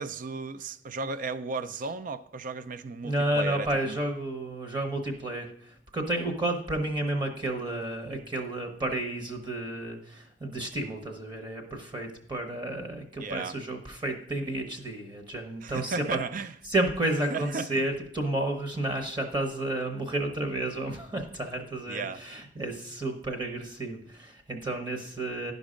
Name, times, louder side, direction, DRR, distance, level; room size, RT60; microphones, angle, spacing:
voice 1, 0.0-4.0 13.2-13.6 15.6-16.5 17.3-17.8 21.9-22.2, right 4 dB, 45° right, 0.4 m, -35 dB
voice 2, 3.0-16.2 16.7-25.5, right 1 dB, 25° right, 0.9 m, -31 dB
10.5 x 5.4 x 5.0 m
head